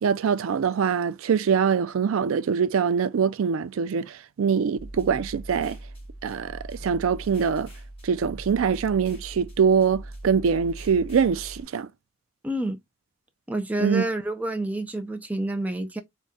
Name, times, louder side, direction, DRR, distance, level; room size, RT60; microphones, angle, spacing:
voice 1, 0.0-5.8 6.2-7.7 8.0-11.9 13.8-14.0, right 6 dB, 80° right, 0.4 m, -23 dB
sound 1, 4.8-11.6, right 1 dB, 25° left, 1.7 m, -41 dB
voice 2, 12.4-12.8 13.5-16.0, right 1 dB, 5° right, 0.4 m, -28 dB
3.6 x 2.2 x 4.0 m
head